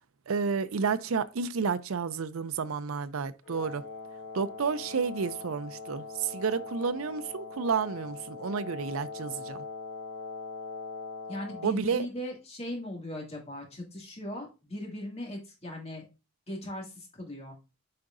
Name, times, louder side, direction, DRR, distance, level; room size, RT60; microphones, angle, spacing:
voice 1, 0.3-3.8 4.3-9.6 11.6-12.1, right 5 dB, 85° right, 0.5 m, -31 dB
Wind instrument woodwind instrument, 3.4-11.7, left 4 dB, 65° left, 1.7 m, -41 dB
voice 2, 11.3-16.0 16.5-17.6, left 1 dB, 30° left, 2.2 m, -39 dB
8.6 x 4.7 x 2.6 m
head